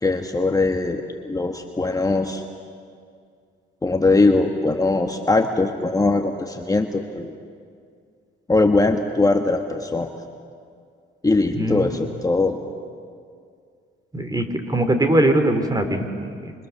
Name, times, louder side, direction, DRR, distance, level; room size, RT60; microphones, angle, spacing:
voice 1, 0.0-2.4 3.8-7.3 8.5-10.1 11.2-12.6, left 3 dB, 20° left, 4 dB, 1.4 m, -21 dB
voice 2, 11.5-11.9 14.1-16.5, right 1 dB, 20° right, 7 dB, 2.9 m, -21 dB
26.0 x 26.0 x 7.0 m, 2.2 s
cardioid pair, 90°, 20 cm